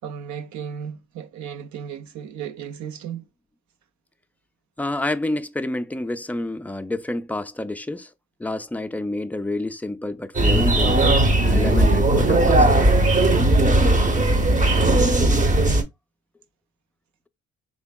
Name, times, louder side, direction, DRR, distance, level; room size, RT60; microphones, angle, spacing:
voice 1, 0.0-3.2, right 8 dB, 70° right, 0.6 m, -35 dB
voice 2, 4.8-8.1 8.4-11.0 11.5-12.9, left 2 dB, 5° left, 0.3 m, -29 dB
sound 1, 10.3-15.8, right 1 dB, 25° right, 0.8 m, -17 dB
3.7 x 3.4 x 2.2 m
cardioid pair, 90°, 30 cm